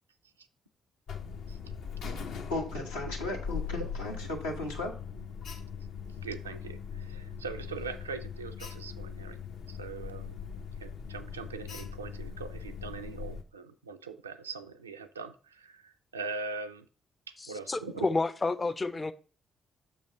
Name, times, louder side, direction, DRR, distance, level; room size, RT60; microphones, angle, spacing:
Alarm, 1.1-13.4, left 6 dB, 65° left, 0.7 m, -40 dB
voice 1, 2.5-5.0, left 2 dB, 80° left, 1.0 m, -35 dB
voice 2, 6.2-9.4 9.7-10.4 10.8-16.9 17.3-18.1, right 4 dB, 85° right, 0.3 m, -41 dB
voice 3, 17.7-19.1, left 3 dB, 25° left, 0.5 m, -30 dB
6.7 x 3.3 x 5.4 m
figure-of-eight pair, 40°, 0 cm